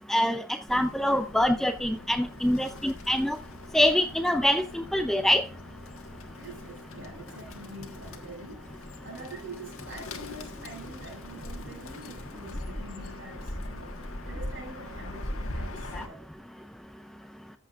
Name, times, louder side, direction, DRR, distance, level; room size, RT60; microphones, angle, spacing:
voice 1, 0.1-0.4 0.7-3.4 3.7-5.4 15.9-16.0, left 1 dB, ahead, 0.5 m, -25 dB
Bird, 0.7-16.1, left 1 dB, 65° left, 1.5 m, -41 dB
voice 2, 6.3-16.2, right 2 dB, 60° right, 6.5 m, -45 dB
14.0 x 8.1 x 2.5 m
head